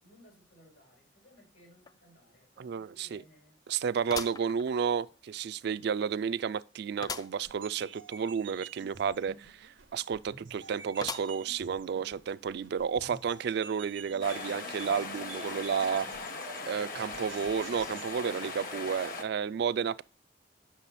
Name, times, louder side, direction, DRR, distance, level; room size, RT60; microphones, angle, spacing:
voice 1, 0.0-3.6 10.6-10.9, left 1 dB, 80° left, 4.0 m, -61 dB
sound 1, 1.9-2.0 2.4-2.5 4.1-5.2 5.7-5.8 7.0-7.4 7.8-7.9 8.1-8.2 11.0-11.6 12.2-12.3 13.3-13.4, left 5 dB, 20° left, 0.3 m, -40 dB
voice 2, 2.6-3.2 3.7-16.1 16.7-20.0, right 7 dB, 60° right, 0.3 m, -32 dB
sound 2, 7.4-18.1, right 5 dB, 85° right, 0.8 m, -50 dB
sound 3, 14.2-19.2, left 3 dB, 50° left, 1.0 m, -39 dB
8.3 x 6.1 x 4.1 m
head